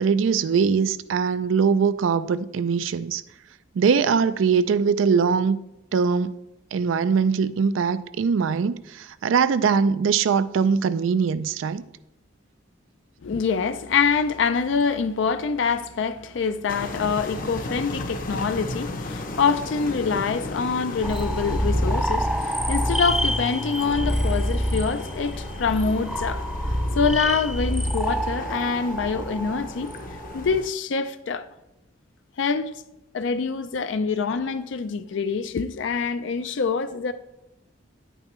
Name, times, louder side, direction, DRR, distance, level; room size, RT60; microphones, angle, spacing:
voice 1, 0.0-3.2 3.8-5.6 5.9-6.3 6.7-11.8, right 6 dB, 80° right, 0.4 m, -22 dB
voice 2, 13.2-26.4 27.0-29.9 30.3-31.5 32.4-32.7 33.1-37.1, left 5 dB, 65° left, 0.4 m, -25 dB
sound 1, 16.7-30.6, left 2 dB, 45° left, 0.8 m, -35 dB
sound 2, 21.0-30.7, equal, ahead, 0.4 m, -27 dB
9.9 x 9.0 x 3.1 m
head